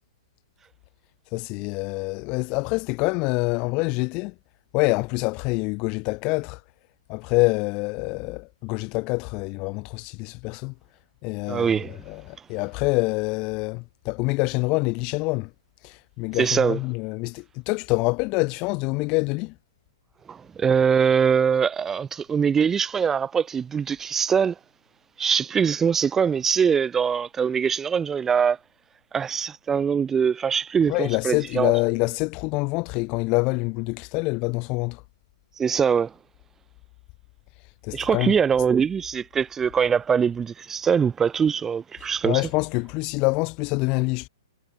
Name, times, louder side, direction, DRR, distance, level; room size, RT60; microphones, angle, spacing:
voice 1, 1.3-4.3 4.7-6.6 7.1-10.7 11.2-15.5 15.8-19.5 30.9-35.0 37.8-38.3 42.2-44.3, left 28 dB, 35° left, 0.5 m, -26 dB
voice 2, 11.5-12.0 16.3-16.8 20.3-24.5 25.2-28.6 29.1-31.7 35.6-36.1 37.9-42.4, right 7 dB, 15° right, 1.0 m, -22 dB
figure-of-eight pair, 115°, 2 cm